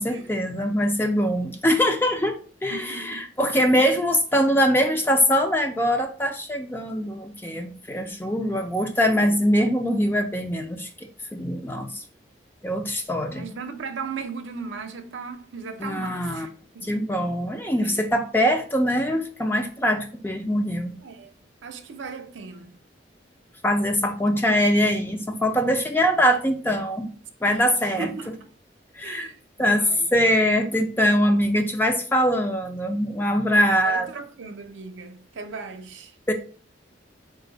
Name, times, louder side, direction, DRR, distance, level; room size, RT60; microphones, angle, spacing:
voice 1, 0.0-10.9 11.3-12.0 12.6-13.5 15.8-16.5 16.8-20.9 23.6-27.1 27.4-28.1 28.9-29.3 29.6-34.1 36.3-36.4, equal, 10° left, 0.4 m, -23 dB
voice 2, 2.7-3.3 13.3-16.5 16.7-17.1 17.8-18.0 21.0-21.3 21.6-22.7 27.5-28.3 29.0-30.1 33.5-36.1, right 5 dB, 90° right, 0.6 m, -37 dB
4.0 x 2.5 x 3.8 m
head